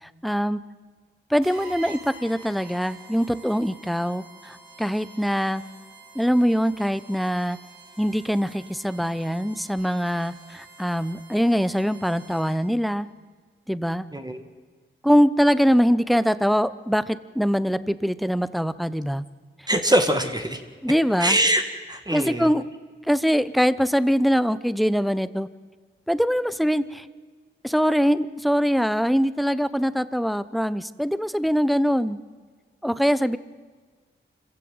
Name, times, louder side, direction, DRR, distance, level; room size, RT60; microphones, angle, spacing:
voice 1, 0.0-0.6 1.3-5.6 6.1-7.6 8.0-13.1 13.7-14.1 15.0-19.2 20.8-21.4 22.1-22.7 23.0-25.5 26.1-27.1 27.6-32.2 32.8-33.4, equal, ahead, 15 dB, 0.9 m, -23 dB
sound 1, 1.4-12.8, right 3 dB, 90° right, 6.0 m, -47 dB
voice 2, 19.7-20.6 21.2-21.6 21.9-22.5, right 1 dB, 20° right, 5 dB, 1.9 m, -22 dB
26.0 x 15.5 x 7.9 m, 1.5 s
cardioid pair, 60°, 21 cm